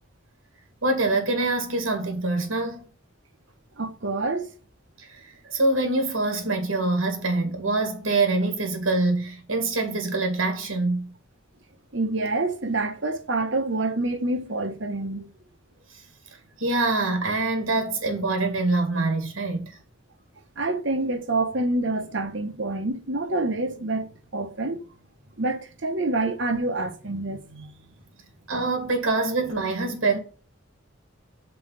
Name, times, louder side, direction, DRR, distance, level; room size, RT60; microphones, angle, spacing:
voice 1, 0.8-2.8 5.0-11.1 16.6-19.8 28.5-30.2, right 2 dB, 85° right, 2.0 m, -25 dB
voice 2, 3.8-4.5 5.5-5.6 11.9-15.3 20.6-24.8 25.4-27.7, right 2 dB, 60° right, 1.2 m, -27 dB
5.6 x 4.6 x 5.6 m
head